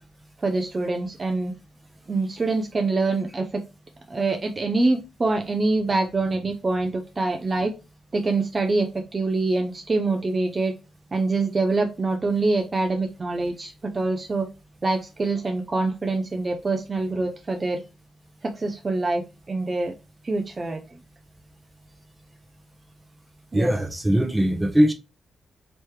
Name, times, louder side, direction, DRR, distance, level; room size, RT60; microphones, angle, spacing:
voice 1, 0.4-1.5 2.1-3.6 4.1-7.7 8.1-10.7 11.1-14.5 14.8-17.8 18.4-19.9 20.2-20.8 23.5-23.7, right 3 dB, 40° right, 0.6 m, -25 dB
voice 2, 23.5-24.9, equal, 15° right, 0.9 m, -20 dB
3.1 x 3.0 x 3.2 m
supercardioid pair, 45°, 0 cm